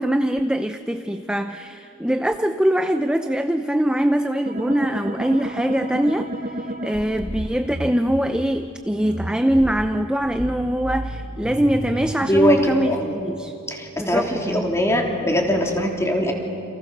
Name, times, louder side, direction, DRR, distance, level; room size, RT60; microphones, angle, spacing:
voice 1, 0.0-13.5 14.0-14.7, equal, 5° right, 8 dB, 0.5 m, -23 dB
sound 1, 4.5-8.2 9.0-12.6, right 1 dB, 40° right, 2.0 m, -31 dB
voice 2, 12.2-13.1 13.7-16.3, equal, 15° left, 0 dB, 3.2 m, -21 dB
29.5 x 28.0 x 6.8 m, 2.7 s
head